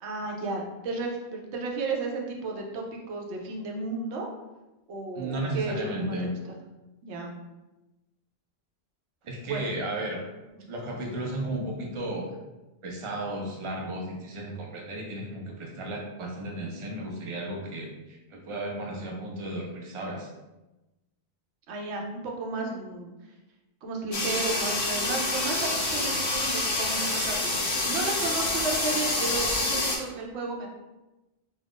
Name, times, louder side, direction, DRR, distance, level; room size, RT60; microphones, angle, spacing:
voice 1, 0.0-4.3 4.9-6.4 7.0-7.3 9.4-9.7 21.7-23.1 23.8-30.7, right 3 dB, 90° right, 0 dB, 0.9 m, -33 dB
voice 2, 5.2-6.3 9.2-10.2 10.7-12.3 12.8-20.3, right 1 dB, 40° right, -1 dB, 0.4 m, -34 dB
sound 1, 24.1-30.0, left 2 dB, 50° left, 0.3 m, -27 dB
2.4 x 2.3 x 3.5 m, 1.0 s
omnidirectional pair, 1.1 m